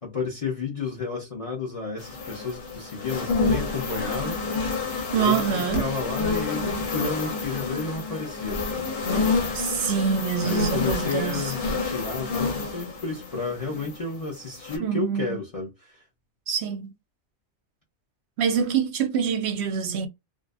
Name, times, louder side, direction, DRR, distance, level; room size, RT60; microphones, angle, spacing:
voice 1, 0.0-4.5 5.1-8.9 10.4-16.0, left 4 dB, 35° left, 0.7 m, -32 dB
sound 1, 2.0-14.2 14.6-14.8, left 4 dB, 75° left, 1.1 m, -28 dB
voice 2, 5.1-5.9 9.5-11.5 14.8-15.4 16.5-16.9 18.4-20.1, right 7 dB, 70° right, 0.9 m, -25 dB
2.6 x 2.4 x 2.3 m
omnidirectional pair, 1.2 m